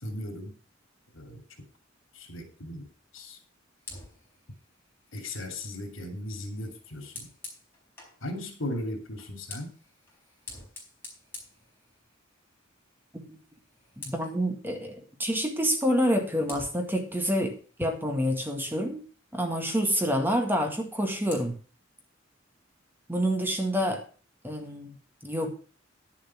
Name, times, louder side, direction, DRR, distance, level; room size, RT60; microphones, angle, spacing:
voice 1, 0.0-0.5 1.1-1.4 2.1-2.8 3.1-3.4 5.1-7.3 8.2-9.7, left 1 dB, 80° left, 5 dB, 2.8 m, -37 dB
Fire, 3.8-8.2 9.1-12.4 12.7-13.0 13.3-14.4 15.8-15.9 16.5-18.8 20.7-21.5, left 2 dB, 10° left, 4.5 m, -48 dB
voice 2, 14.0-19.0 19.3-21.6 23.1-24.0 24.4-24.9 25.2-25.5, equal, 10° right, 4 dB, 1.9 m, -28 dB
11.0 x 7.3 x 6.1 m, 0.39 s
head